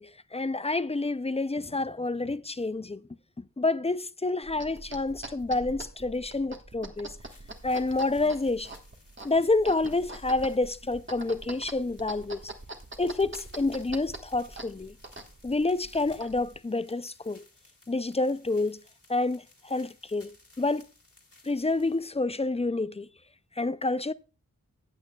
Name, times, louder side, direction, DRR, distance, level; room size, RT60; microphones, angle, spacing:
voice 1, 0.0-3.0 3.4-7.2 7.6-8.7 9.2-12.4 13.0-14.9 15.4-17.4 17.9-18.8 19.1-20.8 21.4-23.1 23.6-24.1, left 2 dB, 20° left, 0.4 m, -28 dB
sound 1, 4.4-16.6, right 2 dB, 35° right, 1.4 m, -44 dB
sound 2, 7.2-22.0, left 2 dB, 40° left, 2.3 m, -59 dB
15.0 x 8.3 x 2.3 m
wide cardioid pair, 50°, 34 cm